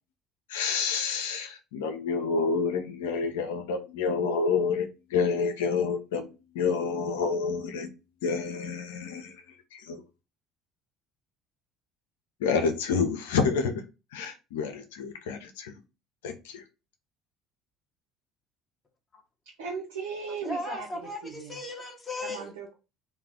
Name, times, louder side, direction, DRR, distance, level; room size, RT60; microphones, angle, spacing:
voice 1, 0.5-6.3 6.5-7.9 8.2-9.4 9.7-10.0 12.4-13.7 14.1-15.8 16.2-16.6, left 5 dB, 85° left, 0.6 m, -28 dB
voice 2, 19.6-20.9 21.2-21.5 22.2-22.7, right 5 dB, 85° right, 0.7 m, -36 dB
voice 3, 20.3-22.5, left 2 dB, 25° left, 0.9 m, -37 dB
2.4 x 2.3 x 3.5 m
hypercardioid pair, 75°, 0 cm